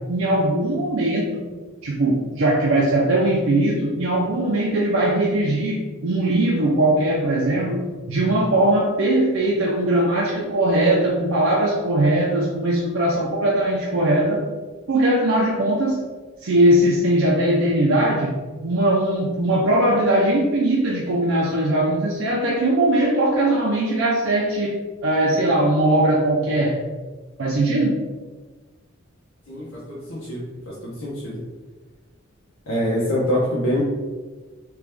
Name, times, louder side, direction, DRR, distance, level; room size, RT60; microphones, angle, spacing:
voice 1, 0.1-1.4 1.8-7.8 8.1-14.4 14.9-16.0 16.4-18.3 18.6-24.7 25.0-26.8 27.4-28.0, right 1 dB, 65° right, -3 dB, 0.6 m, -20 dB
voice 2, 29.5-31.3 32.7-33.8, equal, 90° left, -8 dB, 0.9 m, -25 dB
3.3 x 3.0 x 3.4 m, 1.3 s
head